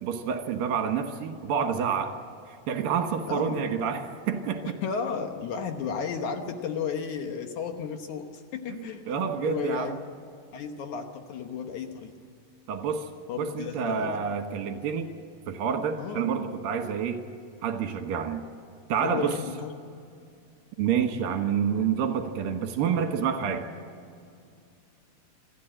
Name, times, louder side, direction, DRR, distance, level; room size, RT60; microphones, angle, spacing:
voice 1, 0.0-2.1 2.7-4.7 9.1-10.0 12.7-13.1 13.4-15.1 15.5-17.2 17.6-18.5 18.9-19.3 20.8-23.6, right 7 dB, 65° right, 6 dB, 2.8 m, -28 dB
voice 2, 3.3-3.6 4.6-9.0 9.3-10.0 10.5-12.1 13.3-14.2 16.0-16.3 19.0-19.7, left 6 dB, 65° left, 6 dB, 2.0 m, -33 dB
27.5 x 13.0 x 8.9 m, 2.4 s
omnidirectional pair, 4.8 m